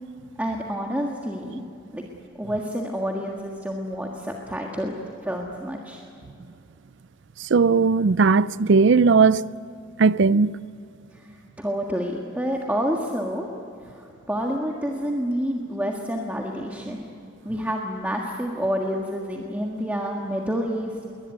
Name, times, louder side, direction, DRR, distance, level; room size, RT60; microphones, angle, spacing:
voice 1, 0.4-1.6 1.9-2.0 2.3-4.9 5.2-6.0 11.1-13.5 13.8-17.1 17.4-21.0, equal, 10° right, 1.6 m, -28 dB
voice 2, 7.4-9.4 10.0-10.6, right 4 dB, 55° right, 0.5 m, -18 dB
22.0 x 19.5 x 9.6 m
head